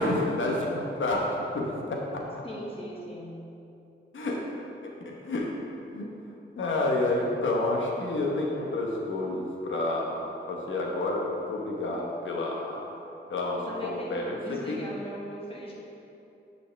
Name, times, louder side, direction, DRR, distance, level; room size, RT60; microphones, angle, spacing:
voice 1, 0.0-2.4 4.1-4.5 4.8-5.5 5.9-6.1 6.6-12.9 13.3-14.8, left 2 dB, 80° left, -1 dB, 1.1 m, -29 dB
voice 2, 2.4-3.4 13.7-15.7, equal, 30° left, -5 dB, 1.6 m, -39 dB
9.9 x 5.3 x 3.4 m, 2.8 s
wide cardioid pair, 130°, 20 cm